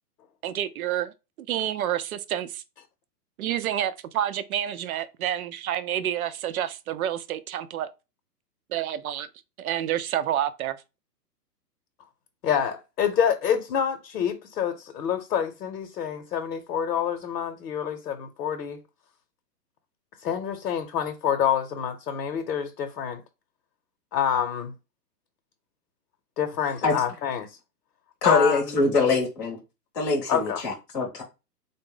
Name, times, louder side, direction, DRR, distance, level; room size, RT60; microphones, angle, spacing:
voice 1, 0.4-2.6 3.4-7.9 8.7-9.3 9.6-10.8, right 11 dB, 60° right, 0.5 m, -29 dB
voice 2, 12.4-18.8 20.2-23.2 24.1-24.7 26.4-27.5 28.2-28.8 30.3-30.6, left 8 dB, 75° left, 0.8 m, -27 dB
voice 3, 28.2-29.6 29.9-31.2, left 4 dB, 15° left, 0.7 m, -23 dB
3.9 x 2.1 x 3.7 m
hypercardioid pair, 155°, 49 cm